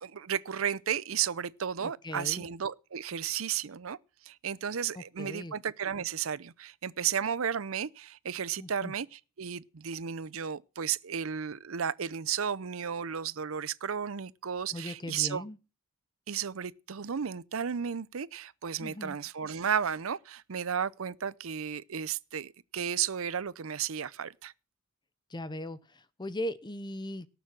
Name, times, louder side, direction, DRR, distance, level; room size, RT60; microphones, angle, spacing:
voice 1, 0.0-4.0 4.2-15.4 16.3-24.5, right 8 dB, 75° right, 0.6 m, -33 dB
voice 2, 1.8-2.5 4.9-5.5 8.6-8.9 14.7-15.6 18.8-19.2 25.3-27.3, left 1 dB, 20° left, 0.8 m, -39 dB
18.5 x 7.1 x 6.2 m
head